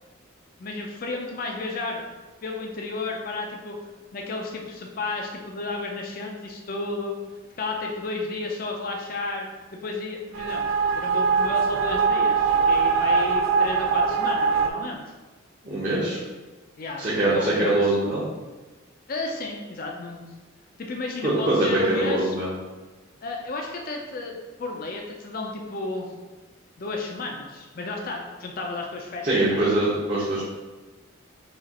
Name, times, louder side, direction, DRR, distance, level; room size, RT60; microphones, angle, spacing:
voice 1, 0.6-2.0 2.4-3.8 4.1-7.1 7.6-9.5 9.7-10.7 11.0-15.0 16.8-18.0 19.1-20.3 20.8-22.4 23.2-26.1 26.8-29.6, left 3 dB, 45° left, 0 dB, 0.4 m, -32 dB
sound 1, 10.3-14.7, right 5 dB, 80° right, 0.3 m, -22 dB
voice 2, 15.6-16.2 17.0-18.2 21.2-22.5 29.2-30.4, right 1 dB, 40° right, -8 dB, 0.9 m, -23 dB
4.9 x 2.4 x 4.1 m, 1.2 s
head